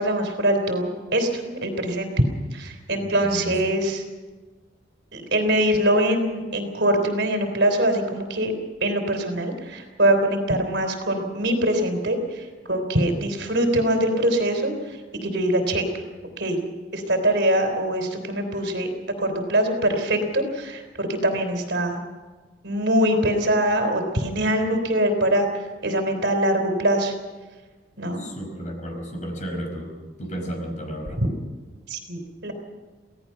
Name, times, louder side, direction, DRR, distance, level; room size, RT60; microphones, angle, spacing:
voice 1, 0.0-2.1 2.5-4.0 5.1-8.5 8.8-15.0 15.2-15.8 16.4-16.6 16.9-18.9 19.2-22.0 22.6-25.5 25.8-27.1 28.0-28.3 31.2-31.3 31.9-32.5, right 1 dB, 60° right, 5 dB, 3.7 m, -23 dB
voice 2, 3.0-3.7 21.3-21.4 28.2-29.9 30.2-31.2, equal, 40° left, 3 dB, 5.3 m, -33 dB
26.5 x 17.5 x 5.9 m, 1.3 s
head